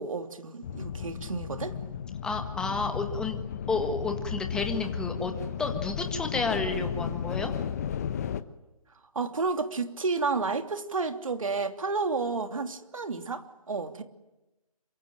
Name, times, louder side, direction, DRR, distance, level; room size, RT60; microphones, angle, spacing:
voice 1, 0.0-1.8 9.1-14.0, right 4 dB, 60° right, 3.0 m, -31 dB
sound 1, 0.6-8.4, left 8 dB, 25° left, 1.1 m, -34 dB
voice 2, 2.2-3.4 3.7-5.3 5.6-7.5, left 3 dB, 5° left, 1.7 m, -31 dB
27.5 x 24.0 x 9.1 m
figure-of-eight pair, 155°, 19 cm